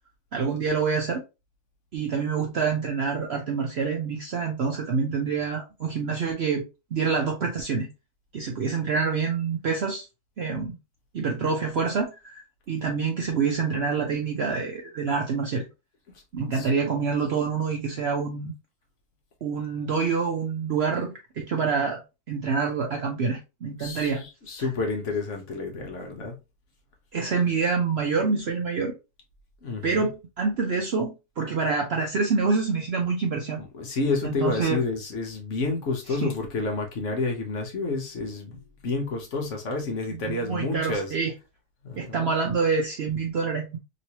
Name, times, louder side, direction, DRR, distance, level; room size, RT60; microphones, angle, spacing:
voice 1, 0.3-1.2 1.9-6.6 6.9-7.9 8.3-10.1 10.4-10.8 11.1-15.7 16.3-18.5 19.4-22.0 22.3-24.2 27.1-28.9 29.8-33.6 34.2-34.8 36.2-36.3 40.1-41.3 42.0-43.8, right 5 dB, 60° right, 0.6 m, -26 dB
voice 2, 23.8-26.4 29.6-30.1 33.6-41.1 41.8-42.3, left 3 dB, 55° left, 1.1 m, -30 dB
3.0 x 3.0 x 2.8 m
omnidirectional pair, 1.6 m